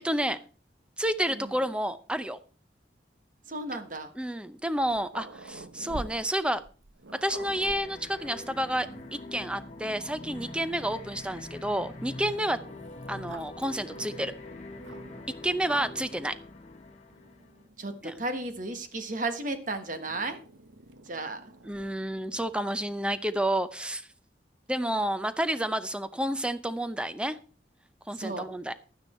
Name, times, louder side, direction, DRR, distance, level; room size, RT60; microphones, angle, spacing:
voice 1, 0.0-0.4 1.0-2.4 4.2-6.6 7.2-8.9 9.1-12.6 13.1-14.3 15.4-16.3 18.0-18.1 21.7-24.1 24.7-27.4 28.1-28.7, right 1 dB, 5° right, 12 dB, 0.6 m, -30 dB
voice 2, 1.3-1.7 3.5-4.1 7.5-7.7 13.9-14.2 17.8-20.4 21.0-21.5 28.1-28.5, right 2 dB, 45° right, 8 dB, 1.4 m, -35 dB
Growling, 4.6-9.2 9.9-10.0 10.4-11.5 12.5-15.3 15.7-16.2 17.1-18.9 20.0-22.6, right 2 dB, 85° right, 0.9 m, -48 dB
sound 1, 7.2-17.7, left 2 dB, 35° left, 1.2 m, -44 dB
12.0 x 9.5 x 4.3 m, 0.38 s
head